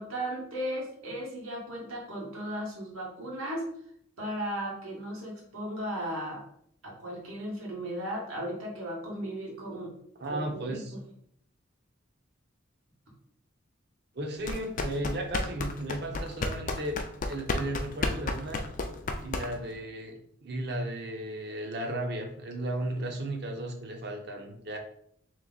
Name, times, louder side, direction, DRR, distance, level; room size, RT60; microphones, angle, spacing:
voice 1, 0.0-3.7 4.2-6.4 6.8-9.9 10.3-11.0, equal, 85° right, -3 dB, 1.6 m, -36 dB
voice 2, 10.2-10.9 14.1-17.0 17.3-18.6 19.2-24.8, right 1 dB, 50° right, 3 dB, 0.7 m, -35 dB
sound 1, 14.4-19.8, left 3 dB, 40° left, 0.4 m, -32 dB
3.5 x 3.2 x 3.9 m, 0.68 s
head